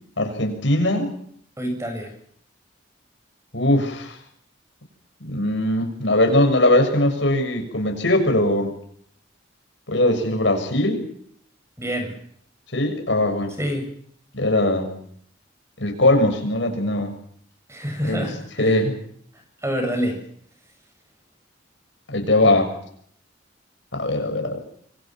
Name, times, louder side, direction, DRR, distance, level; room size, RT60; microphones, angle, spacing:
voice 1, 0.2-1.1 3.5-4.2 5.2-8.7 9.9-11.0 12.7-13.5 14.3-15.0 15.8-17.1 18.0-18.2 18.6-18.9 22.1-22.7 23.9-24.6, left 1 dB, 70° left, 5 dB, 6.8 m, -20 dB
voice 2, 1.6-2.1 11.8-12.1 13.6-13.9 17.7-18.8 19.6-20.2, equal, 15° right, 5 dB, 7.1 m, -27 dB
25.5 x 25.0 x 6.1 m, 0.65 s
head